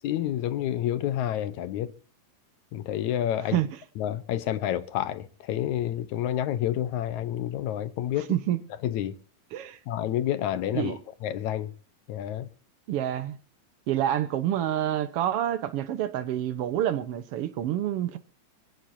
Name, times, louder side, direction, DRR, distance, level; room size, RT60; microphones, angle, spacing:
voice 1, 0.0-1.9 2.7-3.6 4.0-8.3 8.8-9.2 9.9-11.7 12.1-12.5, left 11 dB, 70° left, 2.0 m, -29 dB
voice 2, 8.3-8.6 9.5-9.8 10.7-11.0 12.9-13.4 13.9-18.2, right 11 dB, 80° right, 1.3 m, -27 dB
24.5 x 16.5 x 2.7 m
omnidirectional pair, 4.0 m